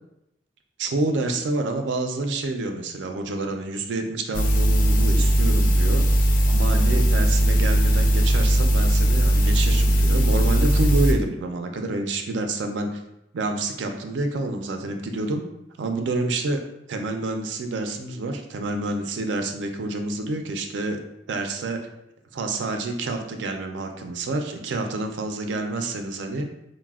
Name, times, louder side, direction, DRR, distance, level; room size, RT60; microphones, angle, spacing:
voice 1, 0.8-6.0 6.5-12.9 13.3-15.4 15.8-16.6 16.9-21.0 21.3-21.8 22.3-26.5, right 2 dB, 80° right, 5 dB, 0.4 m, -28 dB
sound 1, 4.3-11.1, right 1 dB, 45° left, 0.3 m, -19 dB
3.9 x 2.1 x 2.3 m, 0.84 s
head